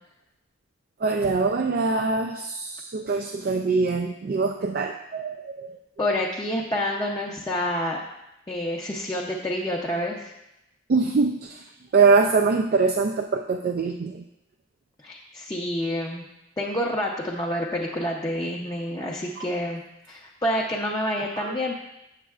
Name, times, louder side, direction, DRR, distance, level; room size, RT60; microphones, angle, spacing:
voice 1, 1.0-5.7 10.9-11.6 11.9-14.2 21.4-21.5, right 4 dB, 50° right, 3 dB, 0.3 m, -23 dB
voice 2, 6.0-8.0 8.5-10.3 15.0-16.2 16.6-19.8 20.1-21.7, left 1 dB, 20° left, -3 dB, 0.6 m, -28 dB
8.0 x 7.4 x 2.4 m, 0.88 s
head